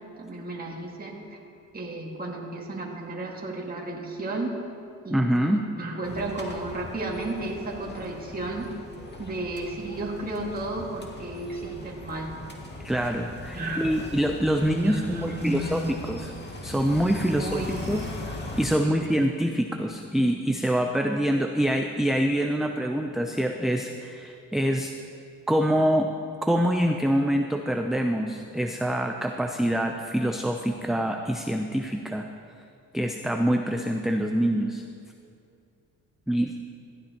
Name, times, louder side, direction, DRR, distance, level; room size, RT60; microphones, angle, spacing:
voice 1, 0.2-1.2 1.7-4.5 5.0-8.7 9.2-12.4 13.5-13.9 14.6-16.0 17.3-17.8 18.8-19.0, right 2 dB, 25° right, -2 dB, 1.8 m, -33 dB
voice 2, 5.1-5.6 12.8-16.3 16.6-18.1 18.6-24.9 25.5-26.1 26.4-32.3 32.9-34.8 36.3-36.5, equal, ahead, 4 dB, 0.5 m, -25 dB
sound 1, 6.0-18.7, left 1 dB, 30° left, 2.1 m, -39 dB
18.0 x 12.5 x 2.9 m, 2.5 s
cardioid pair, 90°, 35 cm